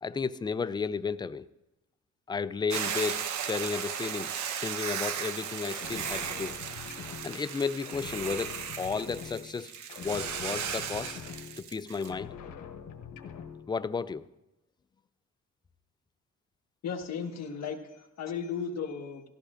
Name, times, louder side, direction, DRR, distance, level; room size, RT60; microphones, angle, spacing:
voice 1, 0.0-1.5 2.3-4.3 4.6-6.6 7.2-9.7 10.0-11.1 11.6-12.3 13.7-14.2, left 5 dB, 15° left, 14 dB, 0.3 m, -33 dB
Hiss / Boiling, 2.7-12.1, right 8 dB, 70° right, 1.0 m, -36 dB
sound 1, 5.7-7.6 7.8-9.6 9.9-11.7 12.0-13.7, left 7 dB, 85° left, 1.2 m, -44 dB
voice 2, 16.8-19.2, left 6 dB, 60° left, 3 dB, 1.5 m, -35 dB
17.5 x 14.0 x 2.5 m, 0.92 s
cardioid pair, 105°, 30 cm